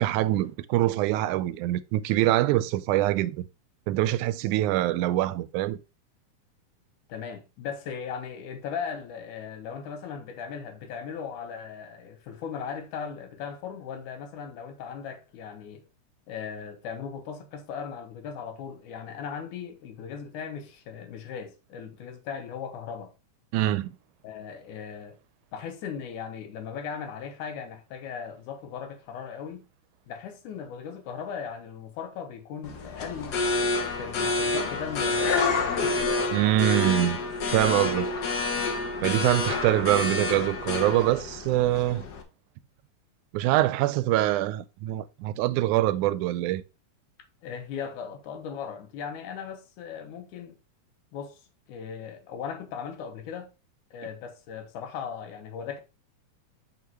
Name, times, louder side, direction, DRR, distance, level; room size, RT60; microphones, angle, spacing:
voice 1, 0.0-3.4 3.9-5.8 23.5-23.9 36.3-37.2 37.5-38.1 39.0-42.1 43.3-46.6, right 15 dB, 85° right, 2.1 m, -24 dB
voice 2, 7.1-15.9 16.3-23.1 24.2-25.2 25.5-29.6 30.1-33.4 34.0-35.4 47.4-50.6 51.1-51.4 51.7-53.5 53.9-55.8, left 7 dB, 85° left, 2.5 m, -38 dB
sound 1, 32.6-42.2, left 3 dB, 65° left, 1.0 m, -28 dB
6.3 x 5.9 x 2.9 m
omnidirectional pair, 3.4 m